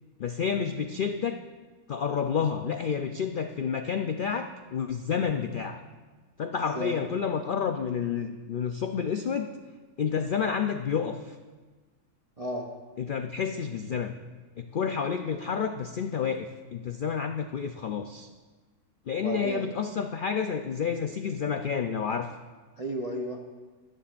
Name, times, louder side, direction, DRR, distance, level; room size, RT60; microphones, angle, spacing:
voice 1, 0.2-1.4 1.9-5.8 6.4-9.5 10.0-11.4 13.0-14.1 14.6-18.3 19.1-22.3, left 6 dB, 80° left, 6 dB, 0.4 m, -30 dB
voice 2, 12.4-12.7 19.1-19.7 22.8-23.4, right 1 dB, 30° right, 0 dB, 0.8 m, -33 dB
25.5 x 10.0 x 2.5 m, 1.3 s
omnidirectional pair, 1.6 m